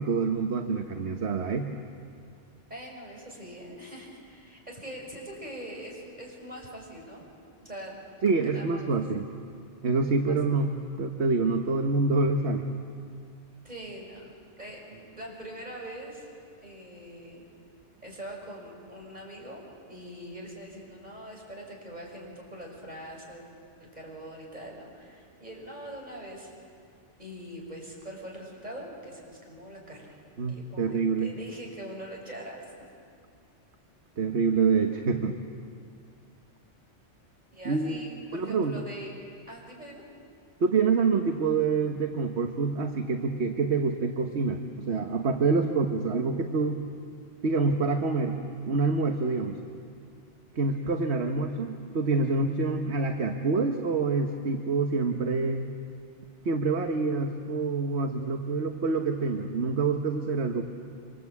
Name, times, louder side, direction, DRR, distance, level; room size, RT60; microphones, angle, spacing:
voice 1, 0.0-1.7 8.2-9.3 9.8-10.7 11.0-12.7 30.4-31.3 34.2-35.4 37.6-38.0 38.3-38.8 40.6-46.8 47.4-48.4 48.7-49.6 50.5-55.7 56.4-60.6, right 4 dB, 65° right, 4 dB, 1.5 m, -26 dB
voice 2, 2.7-7.2 7.6-8.0 8.3-8.9 10.3-10.4 13.6-14.2 14.6-16.3 16.6-17.4 18.0-19.6 19.9-23.4 23.8-26.5 27.2-30.1 30.5-32.6 37.5-39.1 39.5-40.0, right 1 dB, 35° right, -1 dB, 6.3 m, -43 dB
27.0 x 25.5 x 8.4 m, 2.3 s
omnidirectional pair, 1.2 m